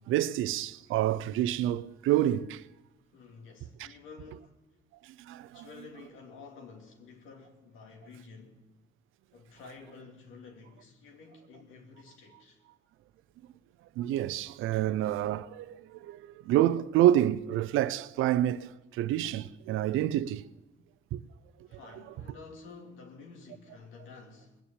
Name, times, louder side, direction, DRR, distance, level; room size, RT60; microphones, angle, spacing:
voice 1, 0.1-2.6 3.8-3.9 5.3-5.7 14.0-20.4 21.1-21.2, right 13 dB, 90° right, 0.6 m, -28 dB
voice 2, 3.1-4.6 5.5-8.7 9.3-12.6 21.7-24.6, left 4 dB, 85° left, 2.9 m, -50 dB
20.0 x 7.1 x 8.9 m
cardioid pair, 90°, 20 cm